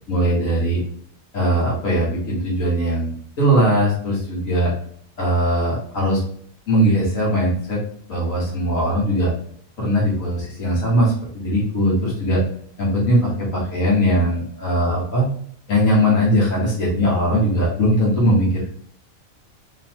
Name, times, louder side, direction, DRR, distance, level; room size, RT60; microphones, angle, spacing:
voice 1, 0.1-0.8 1.3-3.1 3.4-4.7 5.2-6.2 6.7-7.8 8.1-9.3 9.8-12.4 12.8-15.3 15.7-18.7, equal, 80° left, -6 dB, 1.7 m, -20 dB
3.9 x 3.0 x 2.9 m, 0.62 s
omnidirectional pair, 1.4 m